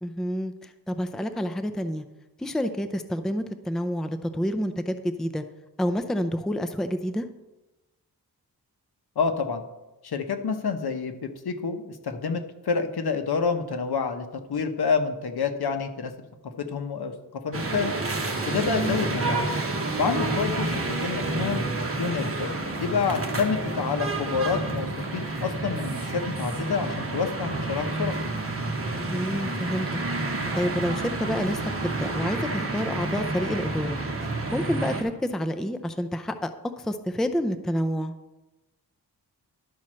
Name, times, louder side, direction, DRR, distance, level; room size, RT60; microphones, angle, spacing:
voice 1, 0.0-2.0 2.4-5.4 5.8-7.3 18.7-19.0 29.0-29.9 30.5-36.5 36.8-38.1, equal, ahead, 8 dB, 0.4 m, -29 dB
voice 2, 9.2-9.6 10.0-16.1 16.4-17.9 18.5-19.5 20.0-21.6 22.0-28.2, left 5 dB, 75° left, 7 dB, 1.0 m, -28 dB
sound 1, 17.5-35.0, right 2 dB, 35° right, 1.3 m, -29 dB
11.5 x 4.3 x 6.2 m, 1.0 s
wide cardioid pair, 120°, 39 cm